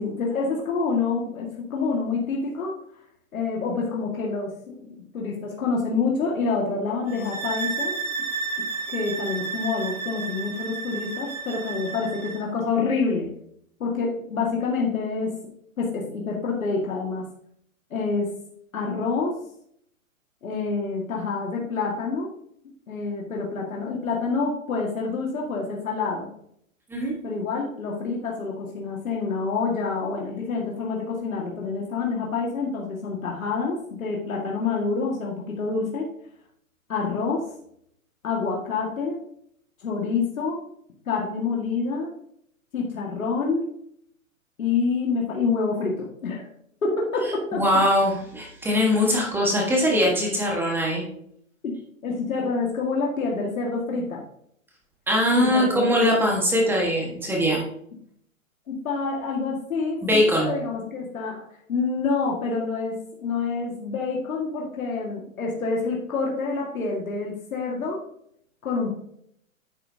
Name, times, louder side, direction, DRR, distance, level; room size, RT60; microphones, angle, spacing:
voice 1, 0.0-2.8 3.3-8.0 8.9-13.3 13.8-15.3 15.8-17.2 17.9-18.3 18.7-19.4 20.4-22.3 22.9-26.3 27.2-36.1 36.9-37.5 38.2-39.2 39.8-40.6 41.1-42.1 42.7-43.7 44.6-46.5 46.8-47.6 51.6-51.7 52.0-54.2 55.3-55.9 58.7-68.0 68.6-68.9, left 4 dB, 75° left, -2 dB, 2.1 m, -27 dB
sound 1, 7.1-12.5, right 5 dB, 75° right, 3.6 m, -32 dB
voice 2, 47.5-51.0 55.1-57.6 60.0-60.5, equal, 5° right, -2 dB, 1.5 m, -21 dB
10.5 x 7.4 x 2.8 m, 0.69 s
hypercardioid pair, 145°, 42 cm